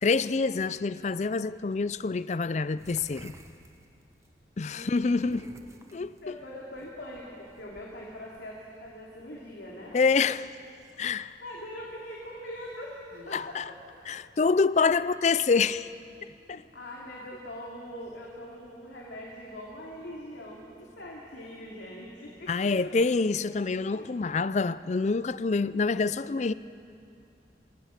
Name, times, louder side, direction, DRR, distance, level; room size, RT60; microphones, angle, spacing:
voice 1, 0.0-3.3 4.6-5.5 5.9-6.3 9.9-10.5 11.0-11.4 13.3-13.7 14.1-15.9 16.2-16.6 22.5-26.5, left 4 dB, 40° left, 0.4 m, -26 dB
sound 1, 2.8-4.3 5.0-8.4, right 1 dB, 15° right, 1.0 m, -53 dB
voice 2, 4.6-5.5 6.2-10.0 11.4-13.9 14.9-15.1 16.5-22.5 22.8-22.9 23.9-24.1, left 1 dB, 85° left, 3.0 m, -42 dB
Human voice, 10.7-11.6 12.5-14.4 15.3-15.5, equal, 45° right, 3.3 m, -57 dB
25.5 x 19.0 x 6.0 m
head